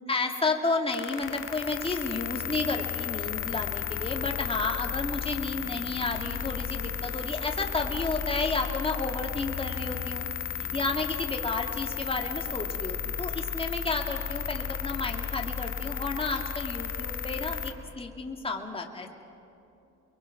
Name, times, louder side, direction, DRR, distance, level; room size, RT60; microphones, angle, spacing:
voice 1, 0.0-10.3 10.7-19.1, left 3 dB, 20° left, 1 dB, 2.4 m, -31 dB
sound 1, 0.9-17.7, left 7 dB, 45° left, 1.8 m, -34 dB
29.5 x 22.5 x 6.0 m, 2.8 s
cardioid pair, 90°, 30 cm